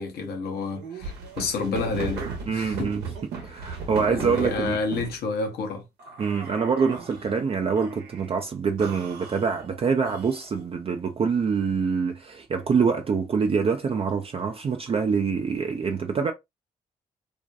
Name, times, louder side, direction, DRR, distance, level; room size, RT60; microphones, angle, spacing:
voice 1, 0.0-2.9 4.1-5.8, left 4 dB, 75° left, 0.8 m, -29 dB
sound 1, 0.7-5.2 6.0-7.3 7.8-8.3 8.8-10.6, right 5 dB, 80° right, 0.7 m, -37 dB
voice 2, 2.5-3.1 3.4-4.8 6.2-16.3, right 5 dB, 35° right, 0.4 m, -25 dB
2.5 x 2.1 x 2.5 m
hypercardioid pair, 45°, 17 cm